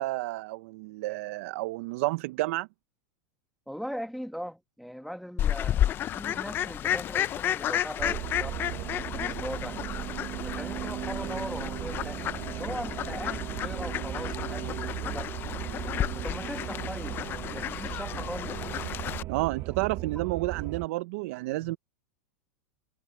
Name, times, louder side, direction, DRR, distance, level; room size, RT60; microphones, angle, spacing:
voice 1, 0.0-2.7 19.3-21.8, right 20 dB, 60° right, 0.6 m, -30 dB
voice 2, 3.7-5.9 6.1-8.6 9.1-9.8 10.4-15.3 16.1-18.5 21.5-21.8, equal, ahead, 1.6 m, -40 dB
Fowl, 5.4-19.2, left 11 dB, 25° left, 0.4 m, -32 dB
sound 1, 8.0-20.9, right 15 dB, 35° right, 1.1 m, -37 dB
supercardioid pair, 150°, 9 cm